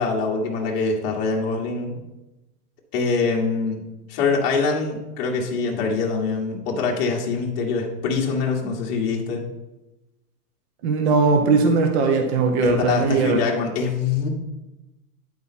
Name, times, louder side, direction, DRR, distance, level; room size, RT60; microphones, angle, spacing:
voice 1, 0.0-1.9 2.9-3.8 4.1-9.4 12.6-14.3, left 4 dB, 40° left, -1 dB, 1.5 m, -24 dB
voice 2, 10.8-13.4, right 4 dB, 45° right, 4 dB, 0.9 m, -19 dB
10.0 x 4.4 x 4.2 m, 1.0 s
supercardioid pair, 165°, 45 cm